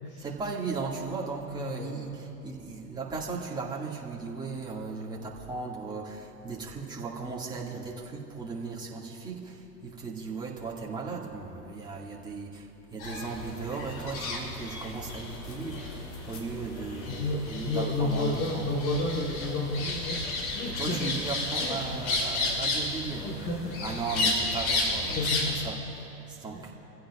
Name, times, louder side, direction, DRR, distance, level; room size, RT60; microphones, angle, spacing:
voice 1, 0.2-18.7 20.6-23.3 23.8-25.2 25.6-25.8 26.3-26.7, right 4 dB, 10° right, -4 dB, 2.3 m, -36 dB
voice 2, 1.6-2.0 17.1-20.3 20.5-21.1 21.6-22.0 23.0-23.8 25.1-25.5 26.5-26.7, left 2 dB, 20° left, -1 dB, 1.5 m, -31 dB
sound 1, 13.0-25.6, left 2 dB, 55° left, 3.2 m, -33 dB
26.0 x 15.5 x 2.6 m, 3.0 s
figure-of-eight pair, 105°, 50 cm